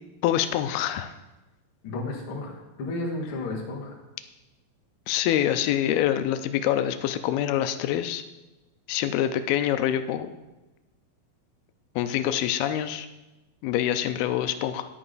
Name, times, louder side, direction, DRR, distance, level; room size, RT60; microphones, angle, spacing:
voice 1, 0.2-1.1 5.1-8.2 8.9-10.3 12.0-13.1 13.6-14.9, left 11 dB, 85° left, 10 dB, 2.5 m, -25 dB
voice 2, 1.8-4.0, left 2 dB, 45° left, -1 dB, 1.9 m, -33 dB
10.0 x 9.8 x 4.0 m, 1.1 s
omnidirectional pair, 4.4 m